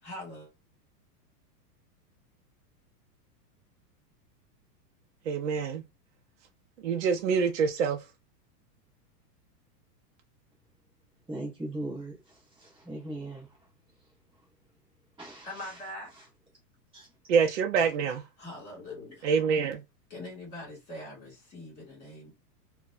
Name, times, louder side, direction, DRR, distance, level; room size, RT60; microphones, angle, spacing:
voice 1, 0.0-0.5 15.4-16.1 17.8-17.9 18.4-19.3 20.1-22.3, left 1 dB, 20° left, 2.1 m, -42 dB
voice 2, 5.3-5.8 6.8-8.0 17.3-18.2 19.2-19.8, right 6 dB, 50° right, 0.5 m, -26 dB
voice 3, 11.3-13.7 14.0-14.1 14.4-14.5 15.2-15.9 16.1-16.3 16.9-17.1, right 1 dB, 5° right, 0.6 m, -40 dB
4.0 x 2.2 x 2.4 m
supercardioid pair, 175°, 49 cm